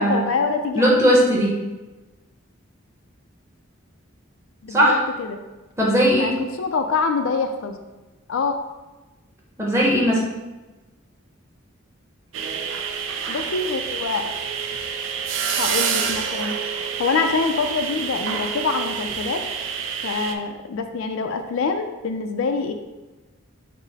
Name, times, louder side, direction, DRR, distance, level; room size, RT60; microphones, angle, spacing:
voice 1, 0.0-0.9 4.6-5.4 6.1-7.8 8.3-8.6 13.3-14.3 15.6-19.4 20.0-22.7, left 4 dB, 70° left, 6 dB, 0.4 m, -25 dB
voice 2, 0.7-1.5 4.7-5.0 5.8-6.3 9.6-10.2, equal, 15° right, -3 dB, 0.9 m, -18 dB
sound 1, 12.3-20.3, right 6 dB, 60° right, 0.4 m, -28 dB
6.1 x 2.0 x 4.0 m, 1.1 s
head